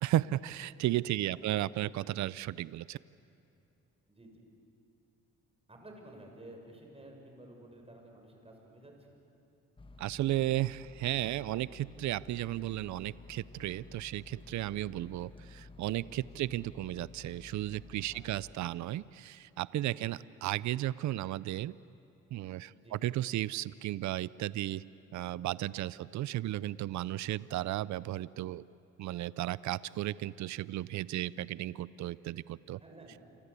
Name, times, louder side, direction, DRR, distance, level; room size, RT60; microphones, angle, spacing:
voice 1, 0.0-3.0 10.0-21.7 22.3-24.8 25.1-28.6 29.0-32.8, right 14 dB, 70° right, 19 dB, 0.6 m, -34 dB
voice 2, 1.1-1.6 4.1-4.4 5.7-8.9 18.1-18.2 22.7-23.0 25.9-26.0 32.8-33.2, right 1 dB, 20° right, 2 dB, 6.7 m, -53 dB
sound 1, 9.8-18.5, left 3 dB, 15° left, 1.3 m, -53 dB
29.0 x 24.5 x 8.4 m, 2.7 s
cardioid pair, 90°, 30 cm